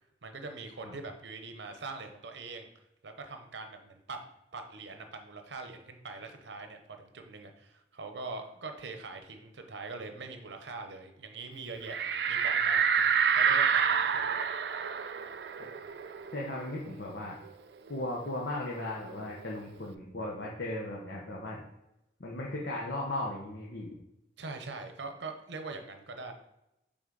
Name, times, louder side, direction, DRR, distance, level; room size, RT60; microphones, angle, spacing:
voice 1, 0.2-2.7 3.0-4.3 4.5-12.0 12.3-12.8 13.3-14.4 24.4-26.3, right 3 dB, 90° right, 5 dB, 0.8 m, -42 dB
sound 1, 11.9-17.1 17.4-17.5 17.9-19.5, right 7 dB, 70° right, 0.3 m, -28 dB
voice 2, 16.3-17.4 17.9-21.6 22.2-24.0, left 1 dB, 85° left, -3 dB, 1.1 m, -37 dB
6.1 x 4.0 x 3.9 m, 0.86 s
head